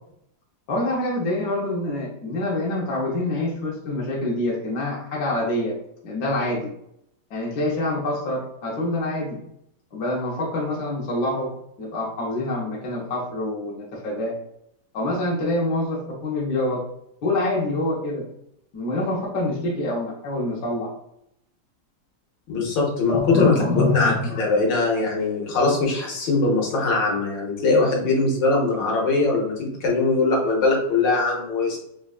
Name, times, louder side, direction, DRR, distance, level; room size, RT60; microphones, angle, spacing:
voice 1, 0.7-5.8 6.0-6.7 7.3-9.4 9.9-11.5 11.8-14.4 14.9-16.8 17.2-18.2 18.7-20.9 23.1-24.4, left 2 dB, 65° left, -3 dB, 1.4 m, -26 dB
voice 2, 22.5-23.5 23.9-24.1 24.4-31.8, left 3 dB, 80° left, -2 dB, 1.7 m, -21 dB
5.1 x 2.3 x 2.4 m, 0.77 s
omnidirectional pair, 2.0 m